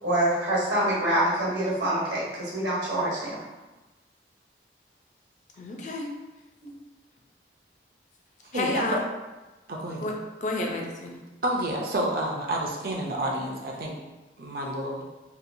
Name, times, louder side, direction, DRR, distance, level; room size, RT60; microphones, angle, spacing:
voice 1, 0.0-3.4 6.6-6.8, right 1 dB, 85° right, -7 dB, 1.1 m, -26 dB
voice 2, 5.6-6.1 8.5-9.0 10.0-10.1 10.4-11.2, left 2 dB, 45° left, 0 dB, 0.4 m, -30 dB
voice 3, 8.5-8.9 9.7-10.2 11.4-13.9 14.4-15.0, right 1 dB, 55° right, 0 dB, 0.4 m, -29 dB
2.8 x 2.1 x 2.5 m, 1.1 s
head